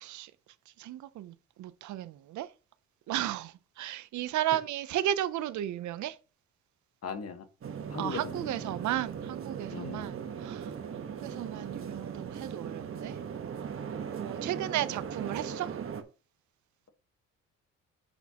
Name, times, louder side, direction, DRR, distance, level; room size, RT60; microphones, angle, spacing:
voice 1, 0.0-0.3 0.8-2.5 3.1-6.2 8.0-10.7 11.1-13.2 14.2-15.7, right 12 dB, 70° right, 0.6 m, -34 dB
voice 2, 7.0-7.4 7.9-8.7 9.7-10.1, left 5 dB, 55° left, 1.4 m, -39 dB
sound 1, 7.6-16.0, right 7 dB, 45° right, 1.2 m, -38 dB
8.0 x 6.2 x 2.9 m
cardioid pair, 90°, 30 cm